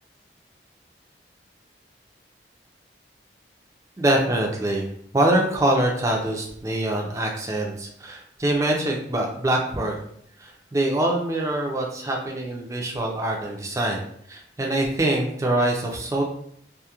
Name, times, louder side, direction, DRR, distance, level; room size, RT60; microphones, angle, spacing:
voice 1, 4.0-4.9 5.1-9.9 10.4-16.2, right 1 dB, 15° right, 0 dB, 0.4 m, -24 dB
2.3 x 2.0 x 2.8 m, 0.67 s
head